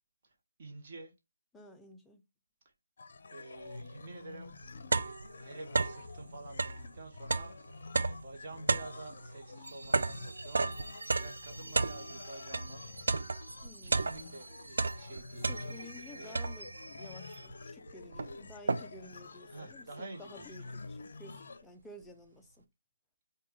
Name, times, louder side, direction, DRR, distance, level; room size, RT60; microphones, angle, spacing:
voice 1, 0.6-1.1 3.3-4.5 5.0-13.2 13.8-16.4 19.5-20.8, right 2 dB, 35° right, 0.9 m, -49 dB
voice 2, 1.5-2.2 13.6-14.0 15.5-16.7 17.0-19.9 20.2-22.7, left 2 dB, 5° left, 0.3 m, -52 dB
sound 1, 3.0-21.6, left 3 dB, 50° left, 0.6 m, -49 dB
sound 2, 4.0-4.1 4.5-6.1 6.5-12.7 13.1-14.4 14.7-16.0 16.3-16.9 17.5-17.6 17.9-19.1, right 3 dB, 65° right, 0.4 m, -33 dB
sound 3, 9.6-17.5, right 2 dB, 90° right, 1.2 m, -50 dB
4.9 x 2.2 x 3.2 m
hypercardioid pair, 165°, 0 cm